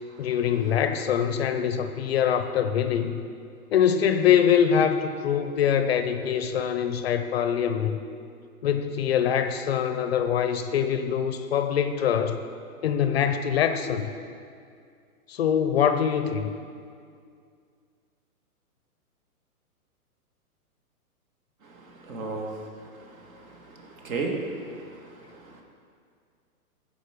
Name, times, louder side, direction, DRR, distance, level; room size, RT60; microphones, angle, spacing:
voice 1, 0.2-3.2 3.7-8.0 8.6-12.4 12.8-14.1 15.3-16.5, left 8 dB, 45° left, 9 dB, 0.5 m, -24 dB
voice 2, 21.6-25.6, right 3 dB, 60° right, 1 dB, 2.1 m, -36 dB
15.5 x 5.3 x 5.1 m, 2.3 s
hypercardioid pair, 145°, 46 cm